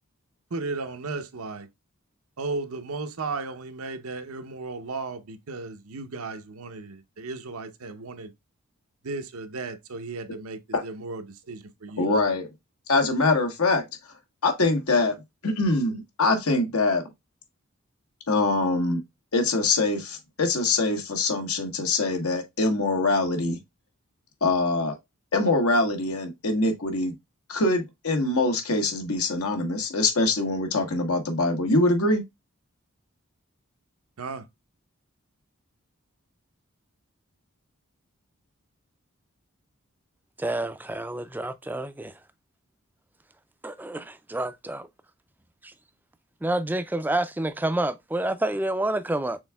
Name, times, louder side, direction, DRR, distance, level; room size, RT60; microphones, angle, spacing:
voice 1, 0.5-1.7 2.4-8.3 9.0-12.1 34.2-34.4, right 3 dB, 80° right, 0.7 m, -35 dB
voice 2, 12.0-12.5 12.9-13.8 14.4-15.2 15.4-17.0 18.3-19.0 19.3-23.6 24.4-24.9 25.3-27.1 27.5-32.2, left 2 dB, 85° left, 1.2 m, -24 dB
voice 3, 40.4-42.2 43.6-44.9 45.6-45.7 46.4-49.4, right 1 dB, 10° right, 0.3 m, -28 dB
6.3 x 3.5 x 2.2 m
head